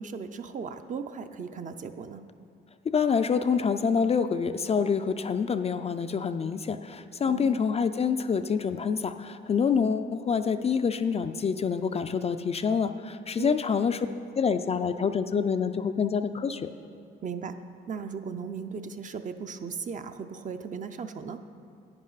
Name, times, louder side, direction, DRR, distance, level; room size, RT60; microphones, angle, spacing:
voice 1, 0.0-2.2 7.2-7.7 13.4-13.6 17.2-17.5 17.9-21.4, right 6 dB, 40° right, 8 dB, 0.5 m, -37 dB
voice 2, 2.9-14.1 14.4-16.7, left 6 dB, 30° left, 9 dB, 0.3 m, -27 dB
10.5 x 9.1 x 4.0 m, 2.5 s
cardioid pair, 90°, 20 cm